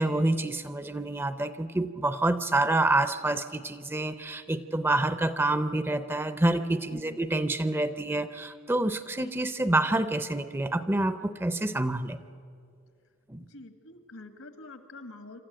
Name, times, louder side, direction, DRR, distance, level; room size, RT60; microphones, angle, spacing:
voice 1, 0.0-12.2 13.3-13.5, right 2 dB, 10° right, 12 dB, 0.5 m, -27 dB
voice 2, 13.4-15.4, left 2 dB, 80° left, 9 dB, 1.7 m, -46 dB
26.5 x 13.5 x 9.0 m, 2.4 s
head